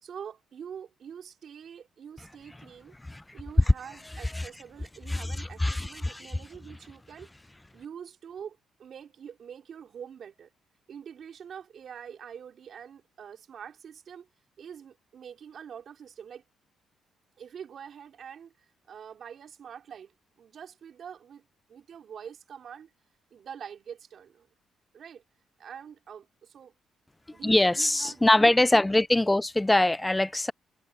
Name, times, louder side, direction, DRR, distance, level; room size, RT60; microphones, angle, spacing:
voice 1, 0.0-2.9 3.3-7.3 7.7-10.5 10.9-14.3 14.6-16.4 17.4-22.9 23.3-24.5 24.9-25.2 25.6-26.7 27.3-28.6, right 8 dB, 60° right, 3.4 m, -45 dB
voice 2, 5.1-6.4 27.4-30.5, left 1 dB, 10° left, 0.3 m, -23 dB
cardioid pair, 90°, 0 cm